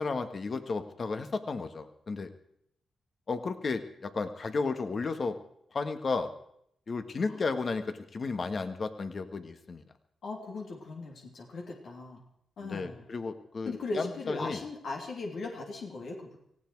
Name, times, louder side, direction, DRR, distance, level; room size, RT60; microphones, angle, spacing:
voice 1, 0.0-2.3 3.3-5.3 5.7-6.3 6.9-9.8 12.6-14.6, left 4 dB, 50° left, 9 dB, 1.7 m, -33 dB
voice 2, 10.2-12.2 12.6-13.1 13.6-16.4, left 3 dB, 75° left, 0 dB, 3.1 m, -38 dB
18.5 x 16.0 x 4.8 m, 0.73 s
cardioid pair, 70°, 0 cm